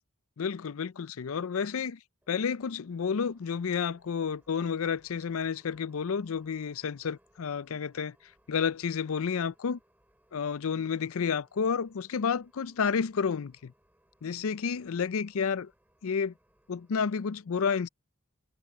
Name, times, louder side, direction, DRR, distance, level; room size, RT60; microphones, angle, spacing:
voice 1, 0.4-2.0 2.3-8.1 8.5-9.8 10.3-13.7 14.2-15.7 16.0-16.3 16.7-17.9, left 6 dB, 70° left, 0.5 m, -30 dB
sound 1, 2.2-17.2, right 1 dB, 10° right, 7.1 m, -68 dB
head